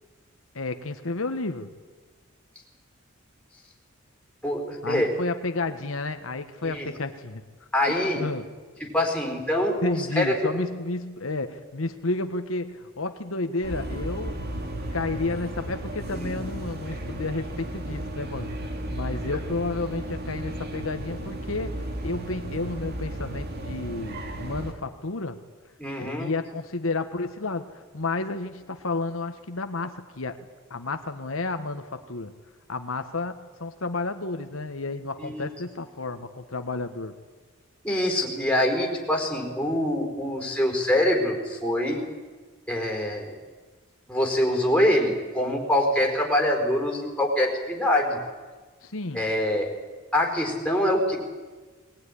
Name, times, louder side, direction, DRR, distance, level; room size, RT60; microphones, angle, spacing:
voice 1, 0.5-1.7 4.8-7.4 8.0-8.5 9.8-14.4 14.9-25.4 26.0-30.4 30.7-32.3 32.7-37.2 48.8-49.3, left 3 dB, 80° left, 8 dB, 1.3 m, -31 dB
voice 2, 4.4-5.1 6.6-6.9 7.7-8.2 8.8-10.5 16.1-16.4 25.8-26.3 35.2-35.5 37.8-42.0 42.7-43.3 44.1-48.2 49.1-49.7 50.1-51.2, left 1 dB, 5° left, 2 dB, 4.6 m, -24 dB
sound 1, 13.6-24.7, right 1 dB, 50° right, 2.6 m, -34 dB
20.0 x 20.0 x 9.9 m, 1.4 s
head